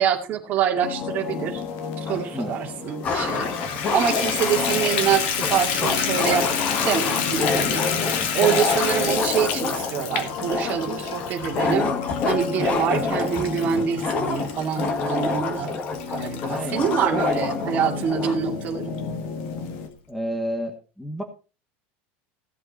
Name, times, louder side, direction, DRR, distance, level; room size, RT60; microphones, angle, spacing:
voice 1, 0.0-1.6 2.0-6.5 6.8-11.9 12.2-15.7 16.1-18.9, right 8 dB, 30° right, 1 dB, 2.4 m, -25 dB
sound 1, 0.8-19.9, left 5 dB, 50° left, 2.0 m, -34 dB
sound 2, 2.1-2.2 3.0-18.4, left 4 dB, 25° left, 1.6 m, -27 dB
Water tap faucet / Bathtub (filling or washing), 3.0-17.4 18.0-18.1 18.6-18.7 19.0-19.1, left 8 dB, 70° left, 2.9 m, -29 dB
voice 2, 16.5-17.3 20.1-21.2, equal, ahead, 5 dB, 1.2 m, -31 dB
16.0 x 7.8 x 4.2 m, 0.33 s
cardioid pair, 175°, 6 cm